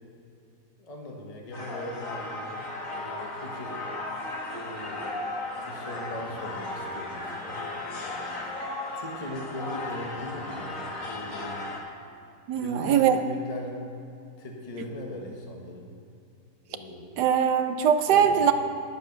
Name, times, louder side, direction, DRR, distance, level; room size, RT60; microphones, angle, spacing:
voice 1, 0.8-2.6 2.9-3.8 4.5-5.1 5.5-7.6 8.9-11.7 12.6-13.8 14.4-15.9 16.7-17.2 18.0-18.4, left 1 dB, 25° left, 0 dB, 1.2 m, -39 dB
sound 1, 1.5-11.8, left 2 dB, 50° left, 1.8 m, -35 dB
voice 2, 12.5-13.2 17.2-18.5, right 8 dB, 75° right, 8 dB, 1.2 m, -21 dB
11.0 x 7.8 x 6.0 m, 2.6 s
omnidirectional pair, 1.9 m